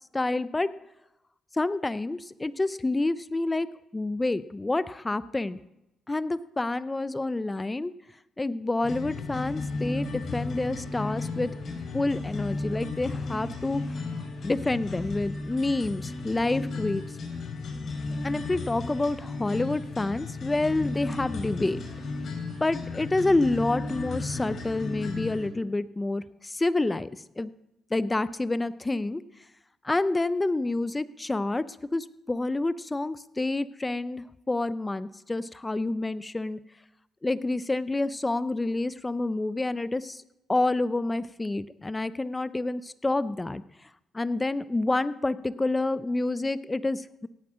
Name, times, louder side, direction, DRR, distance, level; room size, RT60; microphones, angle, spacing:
voice 1, 0.1-0.7 1.5-3.7 3.9-5.6 6.1-7.9 8.4-11.5 11.9-13.8 14.4-17.0 18.2-21.8 22.6-27.1 27.4-27.5 27.9-29.2 29.8-31.6 31.9-36.6 37.2-40.2 40.5-43.6 44.1-47.3, left 2 dB, 15° left, 16 dB, 0.6 m, -28 dB
sound 1, 8.8-25.5, left 3 dB, 55° left, 4.6 m, -34 dB
17.5 x 8.4 x 6.3 m, 0.89 s
cardioid pair, 105°, 0 cm